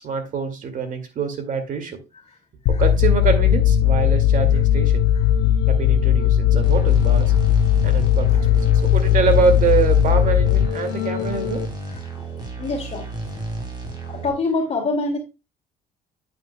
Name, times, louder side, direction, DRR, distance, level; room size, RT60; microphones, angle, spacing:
voice 1, 0.0-2.0 2.8-5.0 5.7-7.3 7.8-11.6, right 5 dB, 50° right, 7 dB, 2.2 m, -24 dB
sound 1, 2.7-11.7, left 10 dB, 85° left, 0.7 m, -18 dB
sound 2, 6.6-14.3, right 2 dB, 25° right, 3.7 m, -32 dB
voice 2, 12.6-13.4 14.0-15.2, left 3 dB, 40° left, 0 dB, 2.2 m, -26 dB
9.0 x 9.0 x 2.2 m, 0.27 s
cardioid pair, 110°, 17 cm